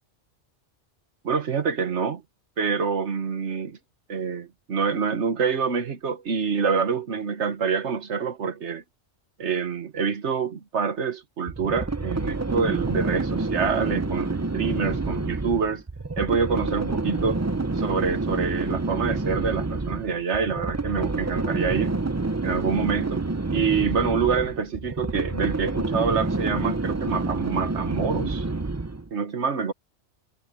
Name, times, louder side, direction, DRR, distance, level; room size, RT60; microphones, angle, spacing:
voice 1, 1.2-2.2 2.6-3.8 4.1-8.8 9.4-15.8 16.2-17.4 17.7-22.0 22.4-23.2 23.5-28.4 29.1-29.7, right 5 dB, 75° right, 1.6 m, -26 dB
sound 1, 11.5-29.1, right 3 dB, 20° right, 0.6 m, -28 dB
omnidirectional pair, 1.2 m